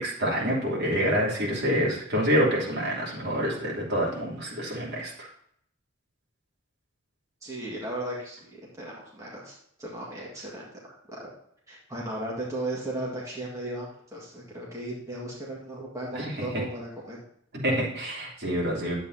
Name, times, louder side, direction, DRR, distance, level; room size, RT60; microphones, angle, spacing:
voice 1, 0.0-5.3 16.1-16.4 17.6-18.9, equal, 55° right, -5 dB, 3.3 m, -27 dB
voice 2, 7.4-8.5 8.8-10.7 11.2-11.3 11.7-17.2, right 1 dB, 15° right, -5 dB, 1.9 m, -36 dB
10.0 x 8.2 x 2.8 m, 0.71 s
head